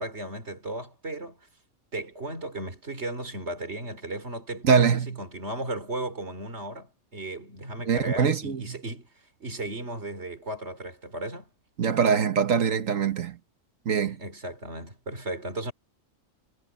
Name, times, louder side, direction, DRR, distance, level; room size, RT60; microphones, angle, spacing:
voice 1, 0.0-1.4 1.9-9.1 9.4-11.5 14.0-15.7, right 1 dB, 55° right, 4.1 m, -35 dB
voice 2, 4.6-5.2 7.9-8.8 11.8-13.4 13.9-14.2, right 7 dB, 85° right, 1.7 m, -23 dB
omnidirectional pair, 1.3 m